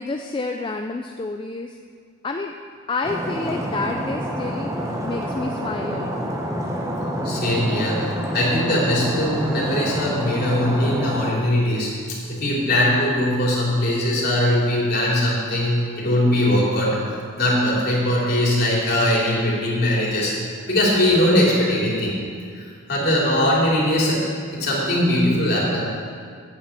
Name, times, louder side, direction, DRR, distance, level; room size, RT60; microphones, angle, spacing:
voice 1, 0.0-1.8 2.2-2.5 2.9-6.3 18.3-18.4, left 3 dB, 25° left, 4 dB, 0.3 m, -29 dB
Stream, 3.0-11.3, equal, 15° right, 1.0 m, -27 dB
voice 2, 7.0-8.0 8.3-11.9 12.3-17.0 17.4-20.3 20.7-22.2 22.5-24.2 24.5-25.8, left 1 dB, 45° left, -6 dB, 3.2 m, -20 dB
8.7 x 8.1 x 7.8 m, 2.1 s
head